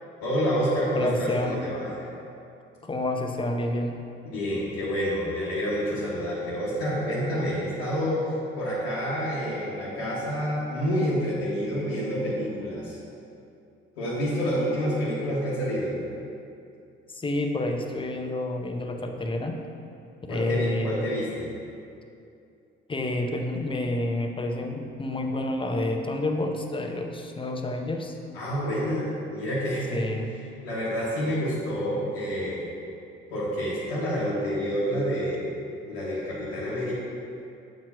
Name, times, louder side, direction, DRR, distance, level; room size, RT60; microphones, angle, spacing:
voice 1, 0.2-1.9 4.2-8.2 8.6-13.0 14.0-16.0 20.3-21.5 28.3-30.0 30.6-32.6 33.3-35.5 35.9-36.9, equal, 80° left, -9 dB, 1.1 m, -28 dB
voice 2, 0.9-1.6 2.8-4.0 17.1-19.6 20.3-21.1 22.9-28.2 29.9-30.3, left 1 dB, 15° left, 3 dB, 0.7 m, -29 dB
7.3 x 3.0 x 5.6 m, 2.5 s
figure-of-eight pair, 50°, 31 cm